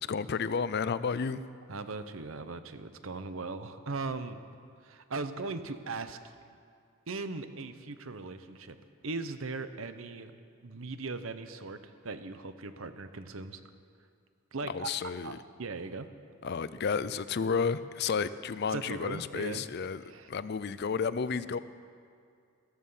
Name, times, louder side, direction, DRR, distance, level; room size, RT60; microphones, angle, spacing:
voice 1, 0.1-1.4 14.6-15.4 16.4-20.0 20.3-21.6, left 5 dB, 50° left, 15 dB, 0.4 m, -31 dB
voice 2, 1.7-4.4 4.8-6.2 7.1-8.8 9.0-10.3 10.6-11.8 12.0-13.6 14.5-16.1 18.7-19.7 20.1-20.3, right 3 dB, 70° right, 10 dB, 0.9 m, -39 dB
14.0 x 14.0 x 5.6 m, 2.3 s
head